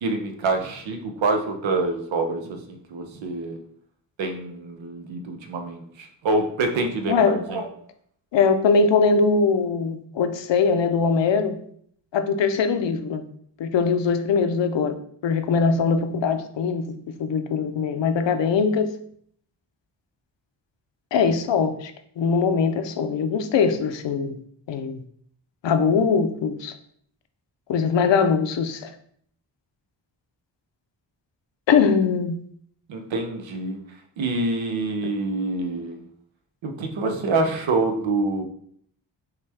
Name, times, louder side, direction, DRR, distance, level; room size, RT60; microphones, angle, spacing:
voice 1, 0.0-3.6 4.2-7.7 32.9-33.8 34.2-36.0 36.6-38.4, right 3 dB, 85° right, 5 dB, 0.7 m, -26 dB
voice 2, 7.1-7.4 8.3-11.6 12.1-13.2 13.6-14.9 15.2-18.9 21.1-24.4 24.7-25.0 25.6-26.7 27.7-28.9 31.7-32.4, left 5 dB, 70° left, 8 dB, 0.6 m, -21 dB
5.6 x 2.3 x 3.4 m, 0.63 s
cardioid pair, 60°, 45 cm